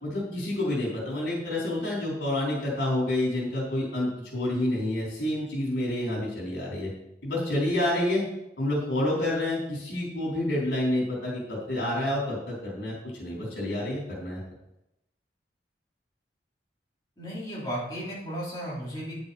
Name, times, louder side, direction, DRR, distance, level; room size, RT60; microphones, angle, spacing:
voice 1, 0.0-6.9 7.2-8.2 8.6-14.4, left 1 dB, 85° left, -4 dB, 4.2 m, -28 dB
voice 2, 17.2-19.1, equal, 25° left, -7 dB, 3.8 m, -34 dB
9.6 x 8.6 x 4.3 m, 0.86 s
head